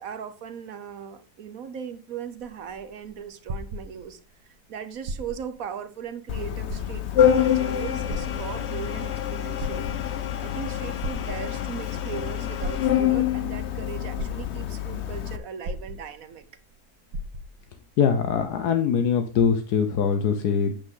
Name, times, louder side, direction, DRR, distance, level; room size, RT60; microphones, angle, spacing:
voice 1, 0.0-9.9 10.4-16.4, right 8 dB, 60° right, 1.3 m, -38 dB
sound 1, 2.3-4.4 5.0-5.6 6.1-6.2 6.6-7.3 8.1-8.9 9.4-10.3 11.0-11.8 12.6-13.3 13.8-13.9 14.2-14.9 15.6-16.5 16.7-16.8 17.1-17.7 18.5-18.6, right 1 dB, 85° right, 1.6 m, -35 dB
Organ, 6.3-15.4, left 10 dB, 55° left, 0.9 m, -26 dB
voice 2, 18.0-20.7, left 6 dB, 75° left, 1.4 m, -22 dB
8.8 x 8.4 x 3.8 m
omnidirectional pair, 1.7 m